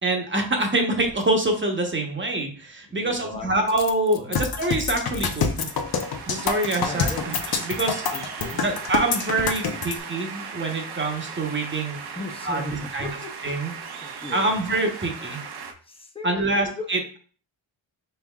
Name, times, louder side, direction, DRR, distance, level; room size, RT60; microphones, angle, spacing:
voice 1, 0.0-5.7 6.3-7.4 7.6-8.0 8.5-12.0 12.4-13.1 13.4-13.7 14.3-15.4 16.2-17.2, right 2 dB, 25° right, 2 dB, 1.0 m, -25 dB
Coin (dropping), 1.0-1.2 3.7-5.7 6.0-6.2 6.6-6.8 7.1-7.9 8.5-9.1 9.4-9.5, left 10 dB, 80° left, 0.6 m, -36 dB
voice 2, 2.9-3.5 4.2-4.4 6.8-7.2 8.1-8.7 12.2-13.3 14.0-14.5 15.9-16.9, left 2 dB, 10° left, 4 dB, 0.7 m, -37 dB
sound 1, 4.3-9.9, left 6 dB, 50° left, 0.8 m, -26 dB
sound 2, 5.0-15.7, right 5 dB, 55° right, 0.7 m, -37 dB
5.5 x 3.5 x 2.3 m, 0.43 s
cardioid pair, 90°, 48 cm